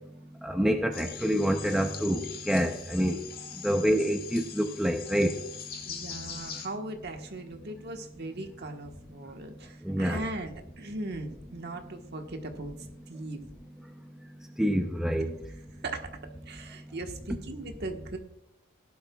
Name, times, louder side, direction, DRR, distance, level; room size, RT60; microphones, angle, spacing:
voice 1, 0.4-3.2 3.6-5.4 9.8-10.2 14.6-15.4, equal, 5° right, 4 dB, 0.5 m, -27 dB
sound 1, 0.9-6.7, left 7 dB, 45° left, 1.6 m, -42 dB
voice 2, 5.9-12.7 13.1-13.4 15.8-16.1 16.4-18.2, right 2 dB, 50° right, 4 dB, 1.3 m, -38 dB
17.0 x 11.5 x 2.3 m, 0.82 s
head